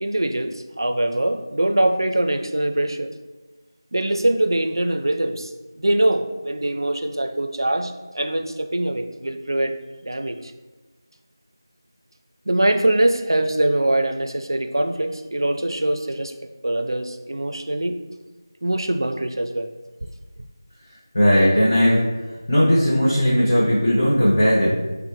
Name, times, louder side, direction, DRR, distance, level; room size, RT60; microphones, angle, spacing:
voice 1, 0.0-3.1 3.9-5.5 5.8-9.8 10.0-10.5 12.5-16.3 16.6-18.0 18.6-19.7, right 1 dB, 80° right, 7 dB, 0.4 m, -23 dB
voice 2, 21.1-22.0 22.5-24.7, equal, 20° left, -9 dB, 0.5 m, -17 dB
5.5 x 2.1 x 3.0 m, 1.2 s
figure-of-eight pair, 175°, 2 cm